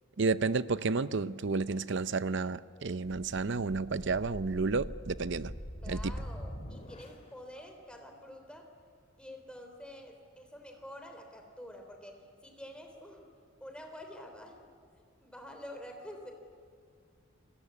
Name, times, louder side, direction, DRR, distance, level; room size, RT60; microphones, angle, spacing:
voice 1, 0.2-5.5 5.9-6.1, right 4 dB, 60° right, 15 dB, 0.7 m, -31 dB
sound 1, 3.0-7.4, equal, 30° left, 2.6 m, -43 dB
voice 2, 5.8-8.7 9.2-13.3 13.6-14.7 15.2-16.3, left 1 dB, 5° left, 4 dB, 3.4 m, -48 dB
29.0 x 20.5 x 8.4 m, 2.1 s
head